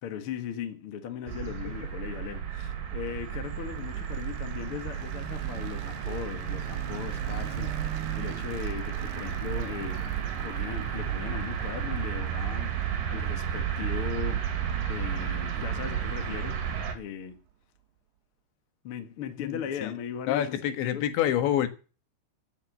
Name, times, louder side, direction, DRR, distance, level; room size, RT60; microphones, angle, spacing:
voice 1, 0.0-10.1 10.4-12.8 13.1-14.5 14.9-16.6 16.9-17.4 18.8-20.6 20.8-21.1, left 8 dB, 60° left, 1.4 m, -38 dB
sound 1, 1.3-16.9, right 9 dB, 55° right, 3.4 m, -32 dB
sound 2, 3.4-17.5, right 8 dB, 70° right, 2.4 m, -45 dB
voice 2, 19.4-19.9 20.3-21.7, left 11 dB, 80° left, 3.8 m, -28 dB
15.5 x 8.2 x 8.0 m
omnidirectional pair, 5.1 m